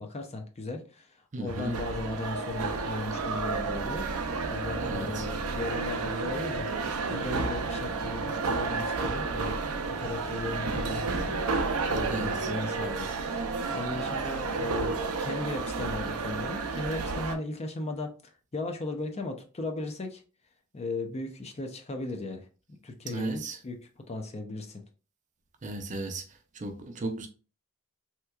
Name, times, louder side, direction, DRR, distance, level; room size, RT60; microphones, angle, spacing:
voice 1, 0.0-20.2 20.7-22.5 22.8-23.8 24.1-24.8, left 2 dB, 30° left, 0.5 m, -37 dB
voice 2, 1.3-1.8 4.8-5.3 12.1-12.5 23.1-23.6 25.6-26.2 26.5-27.3, right 2 dB, 35° right, 0.5 m, -35 dB
sound 1, 1.5-17.3, right 4 dB, 85° right, 0.5 m, -31 dB
3.3 x 2.9 x 2.3 m
head